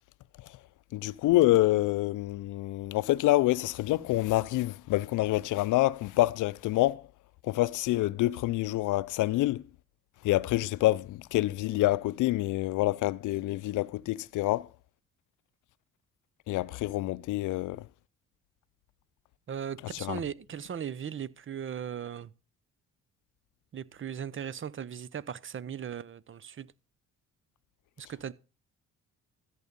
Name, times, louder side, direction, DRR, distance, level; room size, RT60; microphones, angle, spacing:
voice 1, 0.9-7.0 7.5-9.6 10.2-14.7 16.5-17.8 19.9-20.2, left 17 dB, 85° left, 0.6 m, -27 dB
voice 2, 19.5-22.3 23.7-26.7 28.0-28.3, right 8 dB, 40° right, 0.8 m, -38 dB
13.5 x 8.3 x 5.3 m
cardioid pair, 90°, 30 cm